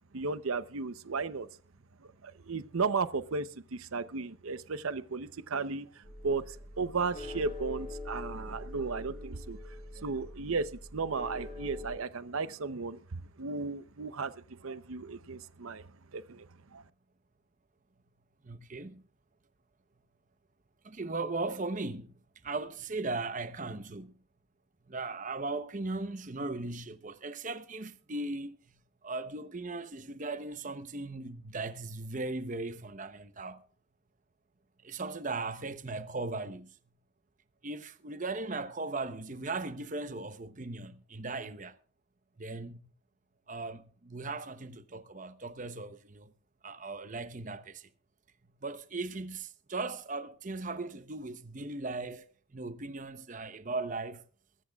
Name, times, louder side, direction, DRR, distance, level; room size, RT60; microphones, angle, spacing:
voice 1, 0.1-1.5 2.2-14.3 14.6-15.8 16.1-16.5 16.7-16.8, right 4 dB, 80° right, 0.7 m, -35 dB
sound 1, 6.0-12.0, left 2 dB, 30° left, 5.6 m, -43 dB
voice 2, 18.4-19.1 20.8-24.2 24.9-28.6 29.0-33.6 34.8-36.8 37.6-41.8 42.4-42.8 43.5-46.3 46.6-47.9 48.6-52.3 52.5-54.2, right 3 dB, 35° right, 0.8 m, -38 dB
23.0 x 13.5 x 2.4 m
head